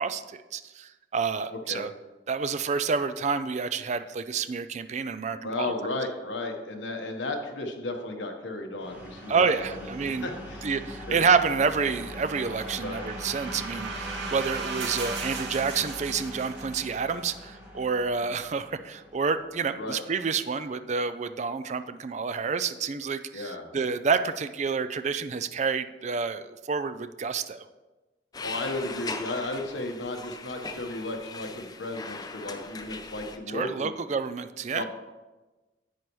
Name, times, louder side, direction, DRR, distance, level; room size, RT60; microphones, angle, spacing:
voice 1, 0.0-1.9 2.3-5.7 9.3-10.3 10.6-27.7 33.5-34.8, right 5 dB, 40° right, 11 dB, 0.4 m, -28 dB
voice 2, 5.4-9.7 10.0-11.2 12.8-13.0 19.8-20.0 23.3-23.7 28.4-34.0 34.7-34.8, left 2 dB, 80° left, 3 dB, 1.3 m, -34 dB
sound 1, 8.8-20.4, equal, 10° right, 1.6 m, -41 dB
sound 2, 11.8-17.0, right 4 dB, 80° right, 1.1 m, -37 dB
sound 3, 28.3-33.4, left 4 dB, 20° left, 0.5 m, -39 dB
10.5 x 8.3 x 3.1 m, 1.1 s
head